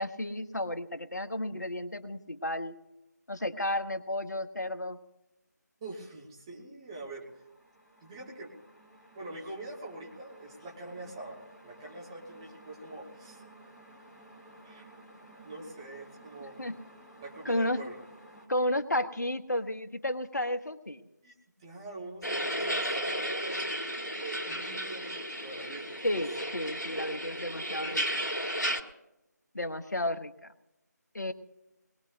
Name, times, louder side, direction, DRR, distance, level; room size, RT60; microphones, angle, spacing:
voice 1, 0.0-2.7 3.3-5.0 16.6-16.7 17.4-17.8 18.5-21.0 26.0-28.2 29.5-30.3 31.1-31.3, left 1 dB, 70° left, 9 dB, 1.1 m, -32 dB
voice 2, 5.8-7.3 8.0-8.5 9.1-11.4 11.6-13.4 14.6-14.9 15.4-16.7 17.2-18.0 21.2-21.3 21.6-23.8 24.2-26.2, right 2 dB, 15° right, -3 dB, 1.5 m, -44 dB
sound 1, 7.2-18.5, right 1 dB, ahead, 1.2 m, -54 dB
sound 2, 22.2-28.8, equal, 85° left, 2.2 m, -33 dB
21.5 x 20.5 x 2.7 m, 0.94 s
figure-of-eight pair, 160°, 10 cm